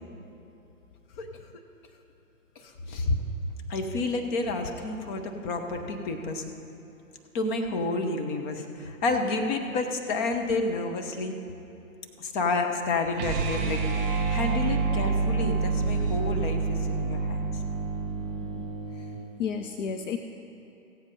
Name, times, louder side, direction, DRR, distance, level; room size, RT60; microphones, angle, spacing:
voice 1, 2.6-3.1 3.7-6.4 7.3-11.4 12.2-17.6, left 3 dB, 35° left, 4 dB, 1.2 m, -30 dB
sound 1, 13.1-19.2, right 4 dB, 30° right, 2.2 m, -28 dB
voice 2, 18.4-19.1 19.4-20.2, left 7 dB, 60° left, 7 dB, 0.7 m, -33 dB
16.0 x 8.2 x 5.4 m, 2.9 s
hypercardioid pair, 140°, 43 cm